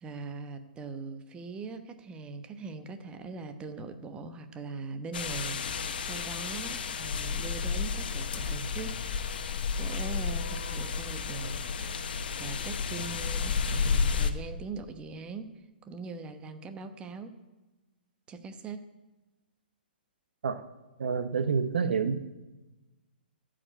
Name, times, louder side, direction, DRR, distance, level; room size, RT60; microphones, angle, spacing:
voice 1, 0.0-9.0 9.8-11.6 12.4-15.5 15.8-17.4 18.3-18.9, right 4 dB, 20° right, 8 dB, 1.0 m, -41 dB
sound 1, 5.1-14.3, left 5 dB, 65° left, 1.1 m, -32 dB
voice 2, 21.0-22.3, right 5 dB, 75° right, 12 dB, 0.9 m, -28 dB
14.5 x 5.1 x 8.7 m, 1.1 s
hypercardioid pair, 130°, 5 cm